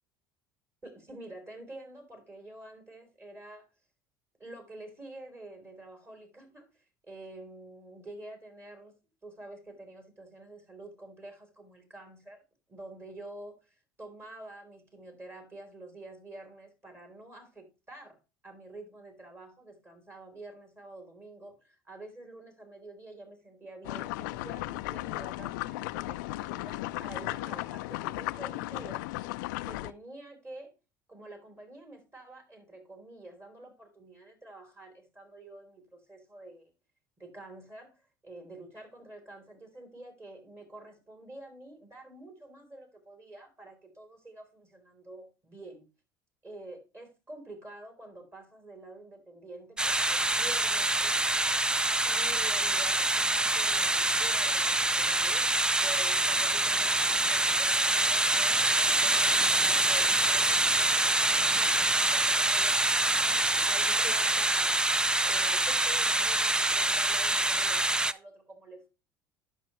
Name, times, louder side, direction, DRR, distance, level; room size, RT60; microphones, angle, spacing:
voice 1, 0.8-3.6 4.4-9.0 9.2-12.4 12.7-29.1 29.6-30.7 31.1-36.7 37.2-45.9 46.4-62.9 63.6-68.9, right 2 dB, 25° right, 3.3 m, -48 dB
sound 1, 23.8-29.9, left 18 dB, 70° left, 0.4 m, -36 dB
sound 2, 49.8-68.1, right 2 dB, 10° right, 0.4 m, -26 dB
sound 3, 50.3-50.7 51.0-51.3 51.6-52.0 52.3-53.3 53.6-54.0 54.3-55.4 55.6-62.0, right 4 dB, 65° right, 1.7 m, -53 dB
11.0 x 5.7 x 3.0 m
hypercardioid pair, 75°, 11 cm